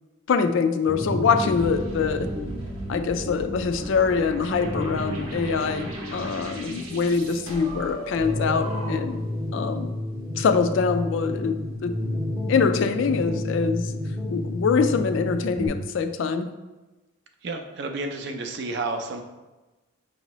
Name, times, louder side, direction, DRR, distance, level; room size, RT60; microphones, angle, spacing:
voice 1, 0.3-2.3 2.9-9.2 9.5-9.9 10.4-12.0 12.5-13.9 14.3-16.5, left 5 dB, 60° left, 9 dB, 0.3 m, -24 dB
sound 1, 0.9-15.7, left 1 dB, 10° right, 0.6 m, -31 dB
sound 2, 1.5-9.3, right 1 dB, 85° right, 0.8 m, -38 dB
voice 2, 17.4-19.2, right 3 dB, 55° right, 5 dB, 0.5 m, -31 dB
5.9 x 2.7 x 3.0 m, 1.1 s
head